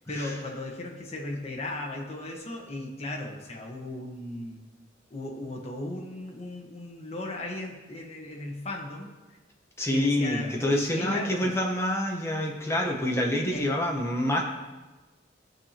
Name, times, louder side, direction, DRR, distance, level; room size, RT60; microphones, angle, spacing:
voice 1, 0.1-4.7 5.1-9.1 9.9-11.6 13.4-13.8, left 2 dB, 35° left, 0 dB, 1.4 m, -36 dB
voice 2, 9.8-14.4, left 1 dB, 15° left, 0 dB, 1.1 m, -27 dB
15.0 x 6.8 x 3.0 m, 1.2 s
head